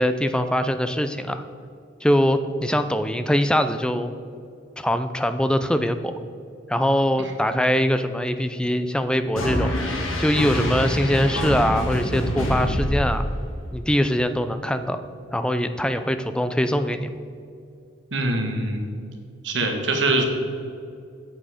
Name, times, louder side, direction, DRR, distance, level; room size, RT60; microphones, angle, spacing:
voice 1, 0.0-1.5 2.0-4.1 4.8-6.1 6.7-13.3 13.7-15.0 15.3-17.2, equal, 5° left, 10 dB, 0.4 m, -22 dB
sound 1, 9.4-13.6, equal, 85° left, 1.8 m, -25 dB
voice 2, 18.1-18.9 19.4-20.2, right 2 dB, 60° right, 3 dB, 1.4 m, -23 dB
8.6 x 8.0 x 5.0 m, 2.4 s
head